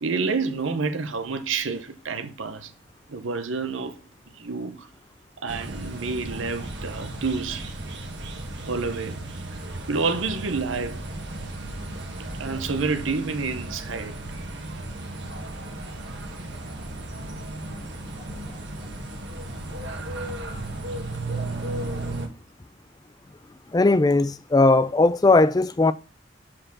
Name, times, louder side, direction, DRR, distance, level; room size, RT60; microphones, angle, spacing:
voice 1, 0.0-2.7 3.1-4.0 4.3-4.9 5.4-7.7 8.7-9.2 9.9-11.0 12.4-14.1, right 4 dB, 80° right, 0.8 m, -28 dB
sound 1, 5.5-22.3, right 2 dB, 60° right, 1.6 m, -35 dB
sound 2, 8.6-12.9, right 1 dB, 20° right, 0.9 m, -47 dB
voice 2, 23.7-25.9, left 2 dB, 20° left, 0.3 m, -18 dB
7.6 x 4.5 x 5.9 m
head